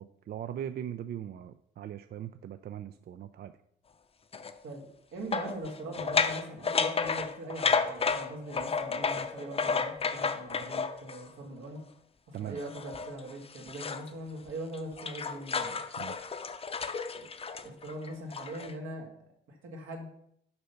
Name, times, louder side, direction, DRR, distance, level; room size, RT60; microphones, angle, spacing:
voice 1, 0.0-3.5 12.3-12.6 16.0-16.3, right 10 dB, 55° right, 11 dB, 0.4 m, -40 dB
sound 1, 4.3-4.5 5.3-11.3 12.6-14.1 14.5-18.7, left 5 dB, 30° left, 0.6 m, -32 dB
voice 2, 5.1-11.8 12.3-15.8 17.2-17.3 17.6-19.1 19.5-20.1, right 1 dB, 80° right, 0 dB, 2.2 m, -41 dB
6.8 x 5.5 x 5.6 m, 0.71 s
cardioid pair, 90°, 20 cm